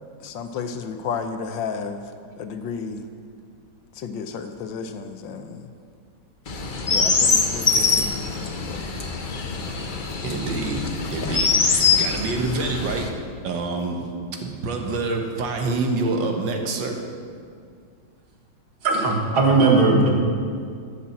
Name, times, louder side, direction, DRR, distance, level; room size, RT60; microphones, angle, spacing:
voice 1, 0.2-2.1 2.4-3.1 4.0-5.7 6.9-8.3 8.7-8.9, left 5 dB, 70° left, 8 dB, 1.4 m, -32 dB
Chirp tweet, 6.5-13.1, left 5 dB, 45° left, 0.6 m, -23 dB
voice 2, 10.2-10.8 11.1-14.1 14.4-17.0, right 3 dB, 70° right, 3 dB, 1.9 m, -27 dB
voice 3, 18.8-20.1, right 3 dB, 85° right, 0 dB, 2.5 m, -18 dB
12.5 x 7.3 x 7.4 m, 2.2 s
omnidirectional pair, 2.2 m